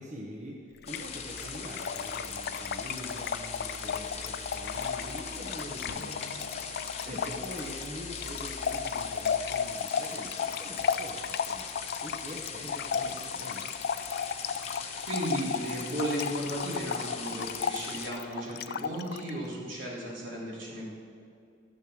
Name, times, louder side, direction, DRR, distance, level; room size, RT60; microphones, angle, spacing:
voice 1, 0.0-6.4 7.0-11.7 12.0-13.8, equal, 40° right, -2 dB, 1.0 m, -44 dB
Trickle dribble / Fill (with liquid), 0.8-19.3, left 7 dB, 55° left, 0.3 m, -34 dB
sound 1, 0.9-18.1, left 5 dB, 35° left, 1.0 m, -40 dB
sound 2, 5.9-7.7, left 2 dB, 70° left, 0.8 m, -47 dB
voice 2, 15.1-20.9, right 1 dB, 75° right, -5 dB, 3.0 m, -35 dB
12.5 x 6.4 x 6.4 m, 2.5 s
head